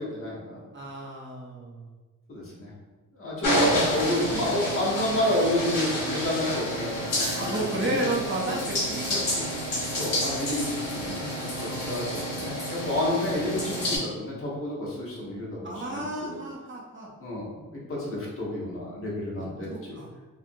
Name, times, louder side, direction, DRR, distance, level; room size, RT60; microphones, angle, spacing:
voice 1, 0.0-0.6 2.3-2.7 3.1-8.0 8.4-8.6 9.9-16.4 17.2-20.0, left 1 dB, 40° left, -5 dB, 0.8 m, -30 dB
voice 2, 0.7-1.9 7.4-9.9 11.5-12.1 15.6-17.1 19.7-20.1, right 1 dB, 35° right, -4 dB, 0.4 m, -33 dB
sound 1, 3.4-14.0, equal, 70° left, 1.1 m, -29 dB
2.7 x 2.6 x 2.5 m, 1.3 s
wide cardioid pair, 165°, 34 cm